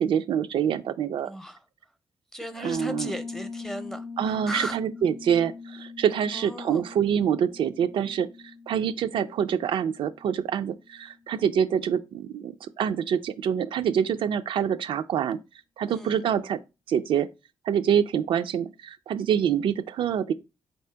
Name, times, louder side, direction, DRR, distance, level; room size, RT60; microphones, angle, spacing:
voice 1, 0.0-1.3 2.6-3.1 4.2-15.4 15.8-16.6 16.9-17.3 17.6-20.3, right 8 dB, 75° right, 0.3 m, -26 dB
voice 2, 1.2-1.6 2.3-4.8 6.3-6.8 15.9-16.1, equal, 5° left, 0.6 m, -36 dB
Piano, 2.7-11.2, left 4 dB, 65° left, 0.6 m, -42 dB
4.1 x 2.8 x 3.3 m
cardioid pair, 75°, 9 cm